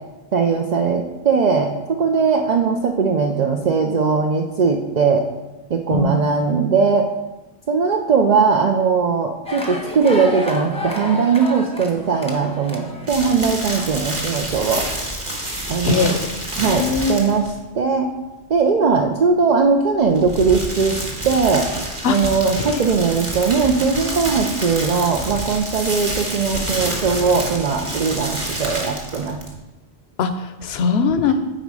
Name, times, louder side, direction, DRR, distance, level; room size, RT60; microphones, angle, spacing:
voice 1, 0.3-5.3 5.7-7.1 7.7-14.9 15.7-16.1 16.6-18.1 18.5-21.7 22.1-29.4, right 5 dB, 50° right, 2 dB, 0.6 m, -19 dB
voice 2, 5.9-6.3 15.8-16.2 16.6-17.4 22.0-22.2 22.6-23.2 30.2-31.3, left 5 dB, 75° left, 10 dB, 0.9 m, -21 dB
sound 1, 9.4-13.5, left 2 dB, 5° left, 0.8 m, -30 dB
sound 2, 13.1-17.6 20.0-29.6, right 1 dB, 30° right, 1.3 m, -28 dB
9.0 x 4.1 x 4.7 m, 1.1 s
omnidirectional pair, 1.1 m